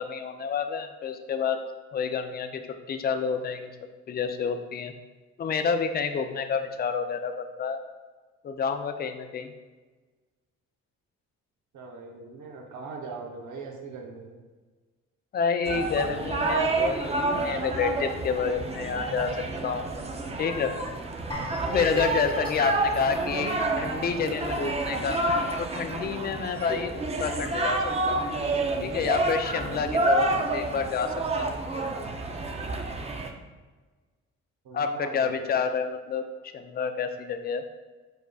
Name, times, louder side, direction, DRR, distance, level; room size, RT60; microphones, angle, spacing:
voice 1, 0.0-1.6 1.9-2.6 2.9-3.7 4.1-4.9 5.4-7.8 8.4-9.5 15.3-19.3 19.6-19.9 20.4-20.7 21.7-25.2 25.6-28.2 28.8-31.6 34.7-36.3 36.5-37.6, left 6 dB, 30° left, 7 dB, 0.4 m, -29 dB
voice 2, 11.7-14.4 34.6-35.5, right 4 dB, 75° right, 1 dB, 0.8 m, -41 dB
sound 1, 15.7-33.3, right 2 dB, 20° right, 0.5 m, -29 dB
sound 2, 21.3-24.3 24.6-24.8 25.2-25.3, equal, 15° left, 0.9 m, -40 dB
4.8 x 4.8 x 2.3 m, 1.3 s
cardioid pair, 90°, 30 cm